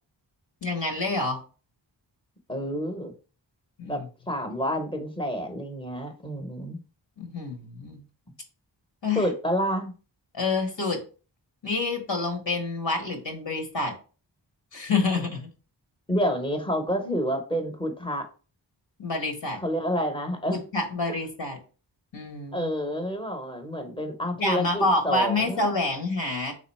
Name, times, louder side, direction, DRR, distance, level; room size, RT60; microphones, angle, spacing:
voice 1, 0.6-1.4 3.8-4.1 7.2-8.0 9.0-9.3 10.3-11.0 11.6-13.9 14.7-15.5 19.0-19.6 20.5-21.6 22.1-22.7 24.4-26.5, left 3 dB, 75° left, 2 dB, 1.5 m, -27 dB
voice 2, 2.5-3.1 3.9-4.0 4.3-6.8 9.1-9.9 16.1-18.2 19.6-20.6 22.5-25.7, equal, 10° left, 4 dB, 0.8 m, -28 dB
3.8 x 3.1 x 4.1 m, 0.36 s
wide cardioid pair, 70°, 45 cm